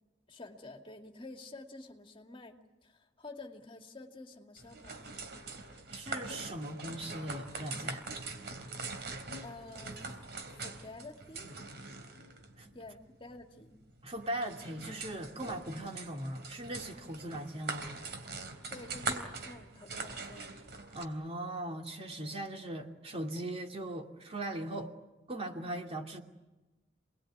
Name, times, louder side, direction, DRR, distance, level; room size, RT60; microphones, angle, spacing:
voice 1, 0.3-5.2 9.4-10.0 10.6-11.5 12.7-13.8 18.7-20.5, left 2 dB, 30° left, 2.4 m, -49 dB
sound 1, 4.6-21.0, right 3 dB, 65° right, 3.6 m, -43 dB
voice 2, 5.9-8.1 12.6-12.7 14.0-17.9 20.9-24.9 25.3-26.2, right 1 dB, 35° right, 2.7 m, -39 dB
29.0 x 21.0 x 9.5 m
head